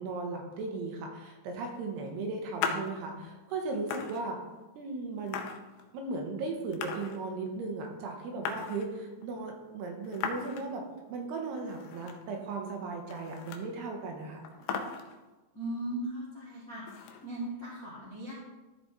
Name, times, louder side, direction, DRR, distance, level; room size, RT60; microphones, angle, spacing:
voice 1, 0.0-4.4 4.8-5.4 5.9-14.4, right 3 dB, 75° right, 2 dB, 3.0 m, -37 dB
sound 1, 2.6-2.9 3.5-3.6 3.8-4.6 5.3-6.2 6.7-7.5 7.8-7.9 8.0-9.3 10.0-10.8 11.1-11.2 11.6-12.4 12.6-12.7 13.0-13.8 14.1-14.2 14.4-15.3 16.9-17.5, left 6 dB, 85° left, 2.9 m, -38 dB
voice 2, 15.5-16.8 17.2-18.3, right 1 dB, 40° left, -8 dB, 1.3 m, -37 dB
13.5 x 4.9 x 4.2 m, 1.1 s
omnidirectional pair, 5.0 m